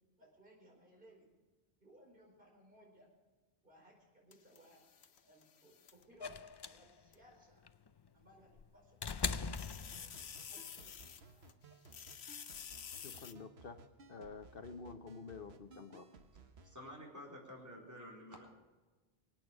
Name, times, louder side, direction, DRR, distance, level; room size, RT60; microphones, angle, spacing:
voice 1, 0.2-1.3 1.8-3.1 3.6-4.8 5.2-6.4 6.7-7.6 8.1-9.9 10.5-11.1, right 1 dB, 55° right, -1 dB, 4.9 m, -64 dB
sound 1, 4.3-6.0 7.1-7.2 9.1-11.5 11.8-13.3, left 7 dB, 85° left, 1.1 m, -50 dB
sound 2, 6.2-10.5 11.7-11.8, left 5 dB, 40° left, 0.4 m, -41 dB
sound 3, 9.9-16.8, right 3 dB, 80° right, 1.4 m, -60 dB
voice 2, 13.0-13.8 14.1-16.1, left 4 dB, 65° left, 8 dB, 1.1 m, -49 dB
voice 3, 16.6-18.5, equal, 15° right, -2 dB, 3.9 m, -50 dB
25.0 x 9.0 x 5.0 m, 1.3 s
omnidirectional pair, 1.0 m